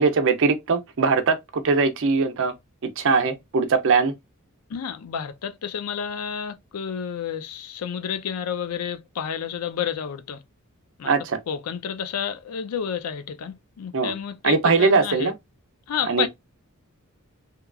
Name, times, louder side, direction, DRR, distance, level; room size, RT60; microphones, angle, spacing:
voice 1, 0.0-2.5 3.0-4.1 11.0-11.4 13.9-14.1 14.4-15.3 16.1-16.3, right 4 dB, 60° right, 0.5 m, -21 dB
voice 2, 4.7-10.4 11.0-11.1 11.5-15.3 15.9-16.3, left 8 dB, 85° left, 0.4 m, -30 dB
2.9 x 2.3 x 2.3 m
head